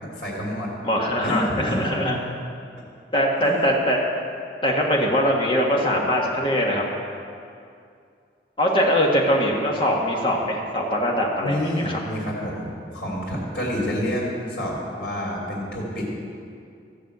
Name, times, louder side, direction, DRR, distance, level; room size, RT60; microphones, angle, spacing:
voice 1, 0.0-0.7 1.2-1.8 2.1-2.2 3.4-3.7 11.4-16.1, equal, 80° left, -4 dB, 2.9 m, -28 dB
voice 2, 0.8-2.2 3.1-4.0 4.6-6.8 8.6-12.0, equal, 30° left, -2 dB, 1.8 m, -22 dB
14.5 x 6.8 x 8.2 m, 2.4 s
head